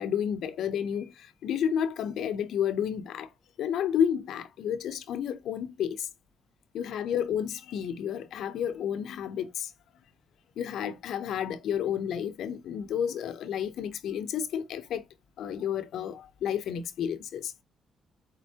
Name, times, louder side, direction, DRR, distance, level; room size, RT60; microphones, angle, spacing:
voice 1, 0.0-3.3 3.6-6.1 6.7-9.7 10.6-15.0 15.4-17.6, left 8 dB, 75° left, 0.6 m, -31 dB
4.3 x 3.9 x 2.8 m
cardioid pair, 90°, 0 cm